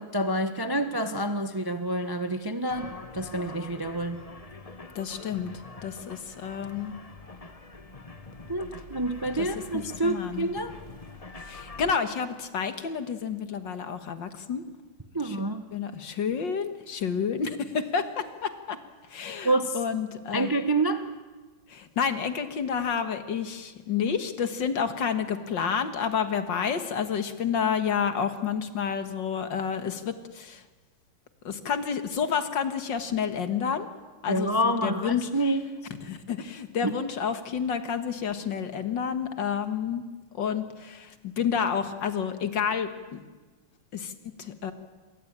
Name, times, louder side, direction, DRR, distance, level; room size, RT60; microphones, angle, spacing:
voice 1, 0.0-4.2 8.5-10.8 15.1-15.7 19.4-19.8 20.3-21.0 34.3-35.6 36.8-36.9, right 1 dB, 20° right, 8 dB, 0.7 m, -28 dB
sound 1, 2.7-11.9, left 3 dB, 20° left, 1.0 m, -45 dB
voice 2, 5.0-5.5 5.8-6.9 9.4-9.5 9.7-10.5 11.5-14.6 15.2-15.4 15.7-18.8 19.1-20.5 21.7-30.6 31.4-33.9 34.2-35.3 36.1-40.0 40.3-43.2 43.9-44.7, left 7 dB, 60° left, 9 dB, 2.2 m, -30 dB
26.5 x 22.5 x 8.9 m, 1.3 s
omnidirectional pair, 2.3 m